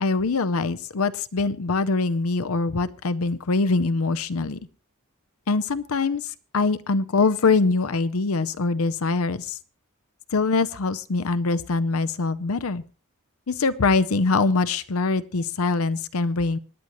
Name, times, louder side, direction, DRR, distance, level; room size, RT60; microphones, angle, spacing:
voice 1, 0.0-4.6 5.5-6.2 6.5-9.5 10.3-12.8 13.5-16.6, left 3 dB, 75° left, 15 dB, 0.7 m, -23 dB
25.0 x 9.8 x 3.1 m, 0.37 s
head